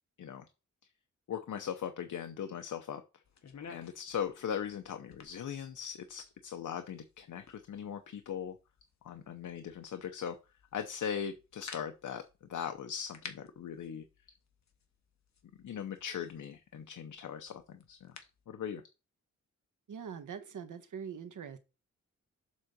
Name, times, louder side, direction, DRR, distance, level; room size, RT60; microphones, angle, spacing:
voice 1, 1.3-3.2 3.7-8.6 9.0-10.4 10.7-12.2 12.5-14.0 15.6-18.2 18.5-18.8, left 8 dB, 80° left, 0.8 m, -39 dB
sound 1, 3.2-18.5, left 6 dB, 65° left, 1.2 m, -55 dB
voice 2, 19.9-21.6, right 7 dB, 85° right, 1.2 m, -43 dB
7.4 x 3.8 x 6.6 m
wide cardioid pair, 175°, 30 cm